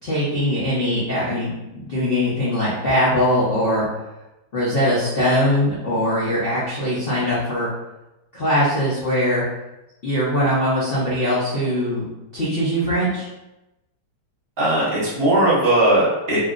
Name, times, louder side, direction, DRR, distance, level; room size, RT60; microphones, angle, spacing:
voice 1, 0.0-3.9 4.5-7.7 8.3-9.4 10.0-12.1 12.3-13.3, equal, 75° left, -10 dB, 0.5 m, -21 dB
voice 2, 14.6-16.4, right 1 dB, 40° right, -7 dB, 0.9 m, -18 dB
3.0 x 2.7 x 2.4 m, 0.96 s
omnidirectional pair, 2.2 m